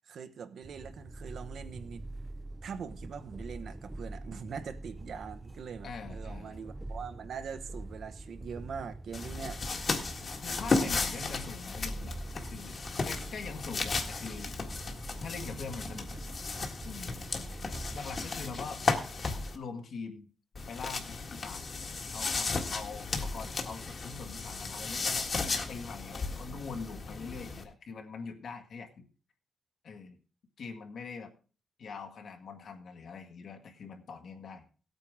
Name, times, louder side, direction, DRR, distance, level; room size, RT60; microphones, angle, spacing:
voice 1, 0.1-2.0 2.6-9.6, right 6 dB, 70° right, 0.9 m, -42 dB
sound 1, 0.6-18.5, right 2 dB, 15° right, 0.5 m, -44 dB
voice 2, 5.8-6.6 10.4-14.6 15.2-16.2 16.8-17.2 17.9-18.8 19.5-20.3 20.7-21.6 22.1-29.0 29.8-30.2 30.6-31.3 31.8-34.6, left 5 dB, 65° left, 1.8 m, -43 dB
sound 2, 9.1-19.6 20.5-27.6, left 4 dB, 45° left, 1.6 m, -35 dB
17.0 x 9.0 x 3.6 m
wide cardioid pair, 145°, 0 cm